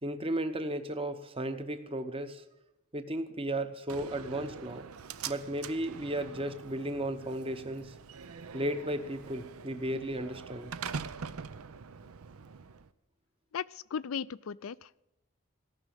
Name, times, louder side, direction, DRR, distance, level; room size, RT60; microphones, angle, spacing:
voice 1, 0.0-2.4 2.9-4.9 5.3-7.9 8.5-10.7, right 1 dB, 25° right, 9 dB, 0.9 m, -34 dB
Slam, 3.9-12.9, right 6 dB, 80° right, 0.6 m, -44 dB
voice 2, 13.5-15.0, left 7 dB, 70° left, 20 dB, 0.4 m, -37 dB
17.5 x 6.2 x 8.9 m, 0.92 s
head